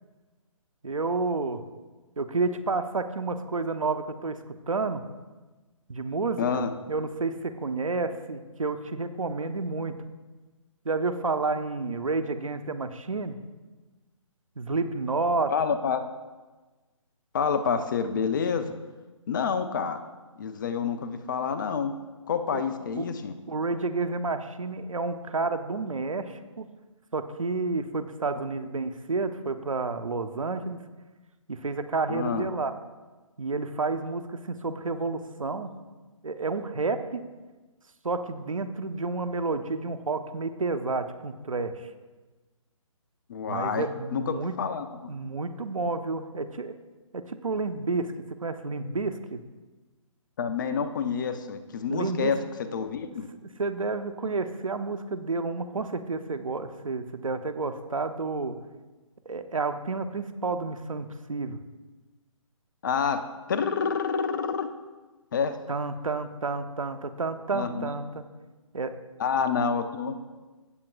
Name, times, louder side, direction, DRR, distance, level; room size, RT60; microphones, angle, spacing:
voice 1, 0.8-1.6 2.2-5.0 5.9-6.5 6.9-9.9 10.8-13.4 14.6-15.5 22.5-22.6 23.0-23.1 23.5-26.7 27.1-30.8 31.5-32.7 33.4-35.7 36.2-37.2 38.0-41.9 43.5-44.5 45.1-46.8 47.1-48.1 48.4-49.4 51.9-52.3 53.6-58.6 59.3-61.6 65.7-68.2 68.7-69.0, right 3 dB, 75° right, 9 dB, 0.8 m, -30 dB
voice 2, 6.4-6.7 15.5-16.0 17.3-18.7 19.3-20.0 20.4-22.0 22.3-23.3 32.1-32.5 43.3-45.1 50.4-52.4 52.7-53.3 62.8-64.7 65.3-65.6 67.5-67.9 69.2-70.1, left 6 dB, 35° left, 10 dB, 0.6 m, -28 dB
16.5 x 7.5 x 2.5 m, 1.3 s
figure-of-eight pair, 140°, 17 cm